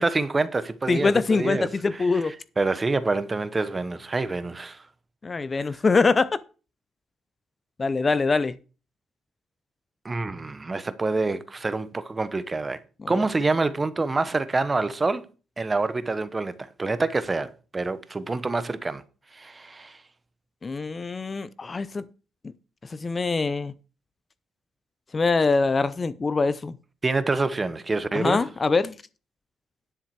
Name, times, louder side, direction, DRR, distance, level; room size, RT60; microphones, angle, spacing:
voice 1, 0.0-4.8 5.6-5.7 10.0-12.8 13.1-15.2 15.6-19.0 19.3-20.0 27.0-28.4, right 3 dB, 25° right, 1.0 m, -27 dB
voice 2, 0.9-2.3 5.2-6.4 7.8-8.6 13.0-13.2 20.6-22.1 22.9-23.7 25.1-26.8 28.1-29.0, left 4 dB, 30° left, 0.6 m, -23 dB
10.0 x 7.3 x 4.7 m
cardioid pair, 90°, 0 cm